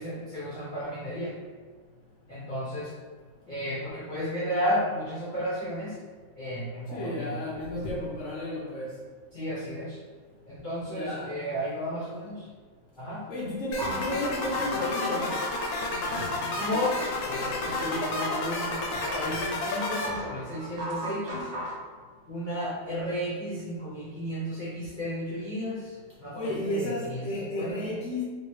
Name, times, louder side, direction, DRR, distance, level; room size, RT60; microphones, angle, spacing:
voice 1, 0.0-1.3 2.3-2.9 3.5-6.0 6.4-7.3 9.3-10.0 10.5-12.5 13.0-13.2 16.5-17.0 17.2-21.4 22.3-27.8, equal, 50° left, -9 dB, 0.6 m, -33 dB
voice 2, 6.9-8.9 10.9-11.3 13.3-15.4 17.6-18.1 26.3-28.2, left 1 dB, 90° left, -6 dB, 0.6 m, -33 dB
sound 1, 13.7-20.1, left 3 dB, 70° left, 0.9 m, -31 dB
sound 2, 13.8-21.8, equal, 85° right, 0.5 m, -37 dB
3.0 x 3.0 x 3.1 m, 1.5 s
omnidirectional pair, 2.0 m